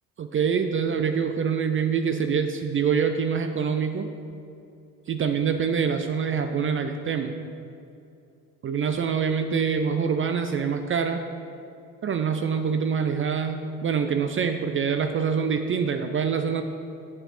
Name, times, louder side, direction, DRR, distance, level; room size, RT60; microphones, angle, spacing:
voice 1, 0.2-4.1 5.1-7.4 8.6-11.2 12.0-16.6, right 6 dB, 30° right, 7 dB, 0.4 m, -25 dB
6.9 x 5.3 x 4.3 m, 2.5 s
hypercardioid pair, 60°, 41 cm